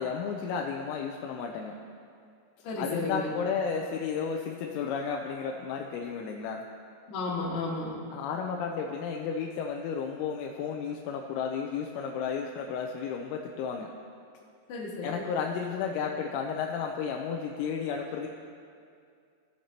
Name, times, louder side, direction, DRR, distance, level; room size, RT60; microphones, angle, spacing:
voice 1, 0.0-1.7 2.8-6.6 8.1-13.9 15.0-18.3, left 6 dB, 90° left, 1 dB, 3.3 m, -33 dB
voice 2, 2.6-3.3 7.1-8.0 14.7-15.2, left 3 dB, 60° left, -5 dB, 3.3 m, -33 dB
19.0 x 7.4 x 2.9 m, 2.3 s
omnidirectional pair, 5.9 m